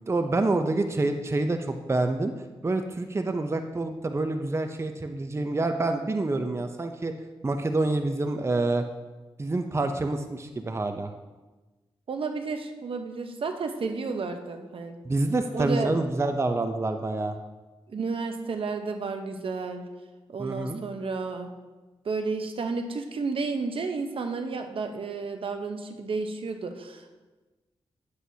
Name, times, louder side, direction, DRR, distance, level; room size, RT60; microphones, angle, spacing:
voice 1, 0.1-2.3 2.6-7.1 7.4-8.8 9.4-11.1 15.0-17.4 20.4-20.8, right 2 dB, 25° right, 7 dB, 0.6 m, -27 dB
voice 2, 12.1-15.0 15.5-15.9 17.9-19.8 20.3-21.5 22.0-27.1, right 4 dB, 65° right, 6 dB, 0.8 m, -32 dB
9.7 x 7.7 x 2.8 m, 1.2 s
cardioid pair, 55°, 10 cm